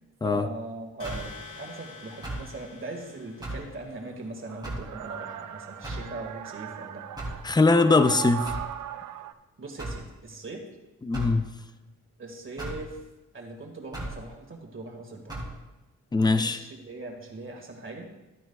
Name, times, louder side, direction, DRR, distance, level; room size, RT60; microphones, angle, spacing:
voice 1, 0.2-7.0 9.6-10.7 12.2-13.0 13.3-15.3 16.3-18.2, right 2 dB, 40° right, 2 dB, 2.0 m, -40 dB
sound 1, 1.0-3.9, left 4 dB, 75° left, 2.3 m, -46 dB
sound 2, 1.0-1.3 2.2-2.5 3.4-3.7 4.6-4.9 5.8-6.1 7.2-7.4 8.4-8.7 9.8-10.0 11.1-11.4 12.6-12.8 13.9-14.2 15.3-15.5, right 1 dB, 15° right, 3.1 m, -35 dB
sound 3, 3.7-9.3, right 11 dB, 75° right, 0.5 m, -38 dB
voice 2, 7.4-8.6 11.0-11.5 16.1-16.6, left 3 dB, 15° left, 11 dB, 0.5 m, -21 dB
13.5 x 9.2 x 2.4 m, 1.1 s
cardioid pair, 95°, 31 cm